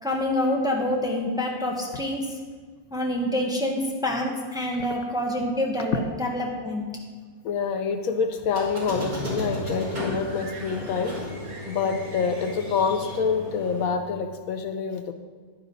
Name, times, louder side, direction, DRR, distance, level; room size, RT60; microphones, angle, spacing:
voice 1, 0.0-2.3 2.9-6.9, left 1 dB, 5° right, 0 dB, 1.1 m, -27 dB
voice 2, 7.4-11.2 11.7-15.1, left 5 dB, 70° left, 8 dB, 1.1 m, -27 dB
Squeak, 8.5-13.9, equal, 80° right, 4.0 m, -34 dB
11.0 x 10.0 x 4.0 m, 1.5 s
omnidirectional pair, 1.6 m